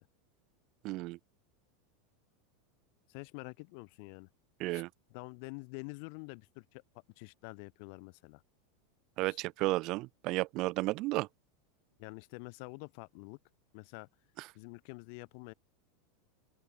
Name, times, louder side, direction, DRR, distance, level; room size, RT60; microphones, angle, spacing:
voice 1, 0.8-1.2 4.6-4.9 9.2-11.3, right 21 dB, 50° right, 0.4 m, -33 dB
voice 2, 3.1-4.3 4.7-4.8 5.1-6.8 7.2-8.4 9.2-9.4 12.0-13.4 13.7-14.1 14.5-15.5, left 36 dB, 60° left, 3.1 m, -47 dB
open air
hypercardioid pair, 100°, 0 cm